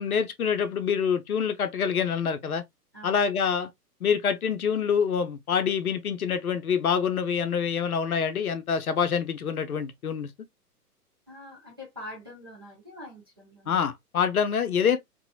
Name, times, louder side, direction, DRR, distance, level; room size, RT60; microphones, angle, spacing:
voice 1, 0.0-2.6 3.0-3.7 4.0-10.3 13.7-15.0, left 7 dB, 65° left, 0.7 m, -26 dB
voice 2, 2.9-3.3 11.3-13.8, left 1 dB, 15° right, 0.4 m, -44 dB
2.8 x 2.6 x 2.3 m
figure-of-eight pair, 120°, 47 cm